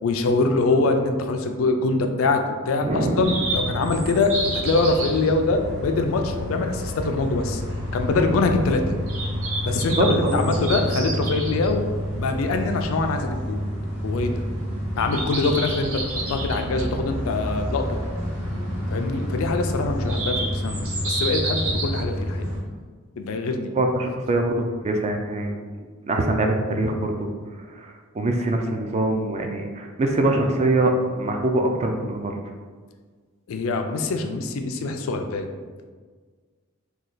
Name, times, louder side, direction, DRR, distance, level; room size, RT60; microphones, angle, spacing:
voice 1, 0.0-7.6 7.9-9.0 9.6-11.9 12.2-13.6 14.0-14.3 15.0-16.0 16.3-18.0 18.9-22.4 23.2-23.7 33.5-35.5, left 3 dB, 70° left, 5 dB, 0.4 m, -24 dB
voice 2, 2.8-3.4 10.0-10.5 11.2-11.4 23.7-25.6 26.1-27.3 27.7-32.4, right 2 dB, 30° right, 3 dB, 0.3 m, -23 dB
sound 1, 3.2-22.6, equal, 80° right, 1.1 m, -28 dB
3.1 x 2.2 x 3.9 m, 1.5 s
head